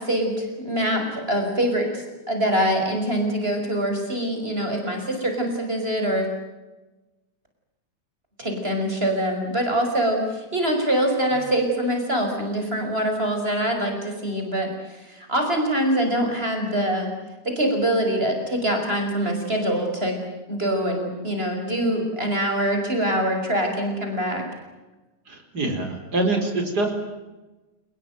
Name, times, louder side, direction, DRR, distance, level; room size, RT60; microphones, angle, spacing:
voice 1, 0.0-6.3 8.4-17.1 17.4-20.2 20.5-24.5, right 1 dB, 35° right, 3 dB, 6.0 m, -24 dB
voice 2, 25.3-26.9, right 2 dB, 70° right, 4 dB, 5.1 m, -25 dB
29.0 x 20.0 x 9.2 m, 1.1 s
omnidirectional pair, 1.8 m